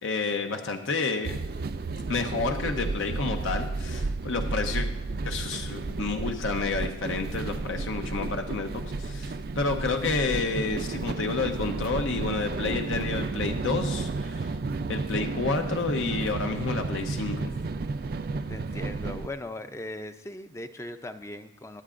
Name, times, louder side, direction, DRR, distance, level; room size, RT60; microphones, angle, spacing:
voice 1, 0.0-1.4 2.1-4.9 5.2-14.5 14.9-17.5, left 3 dB, 80° left, 4 dB, 0.8 m, -30 dB
sound 1, 1.2-19.3, right 3 dB, 50° right, 0.4 m, -32 dB
voice 2, 18.5-21.8, left 1 dB, 15° left, 9 dB, 0.4 m, -39 dB
22.5 x 8.4 x 2.5 m, 0.90 s
head